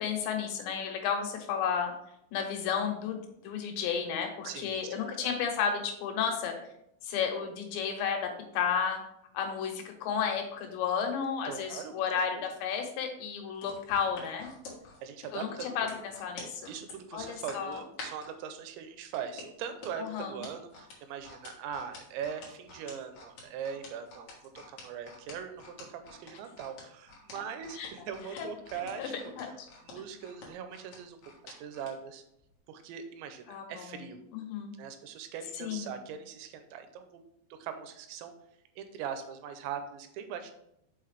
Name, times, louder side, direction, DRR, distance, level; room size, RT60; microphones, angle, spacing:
voice 1, 0.0-1.9 2.3-6.6 7.0-9.0 9.3-14.5 15.3-15.9 16.2-16.7 17.1-17.8 20.0-20.3 27.8-28.1 28.3-28.5 29.0-29.1 29.4-29.5 33.5-34.0 34.3-34.7 35.5-35.9, left 7 dB, 80° left, 3 dB, 3.2 m, -32 dB
voice 2, 4.4-4.9 5.2-5.3 11.5-11.9 12.3-12.5 15.0-15.9 16.7-24.3 24.5-29.1 29.8-31.2 31.4-32.2 32.7-34.2 34.8-37.2 37.5-38.3 38.8-40.5, right 7 dB, 90° right, 8 dB, 3.0 m, -41 dB
sound 1, 13.6-18.3 19.1-31.9 32.4-32.5, left 4 dB, 60° left, 2.1 m, -48 dB
5.9 x 5.8 x 3.3 m, 0.77 s
omnidirectional pair, 5.2 m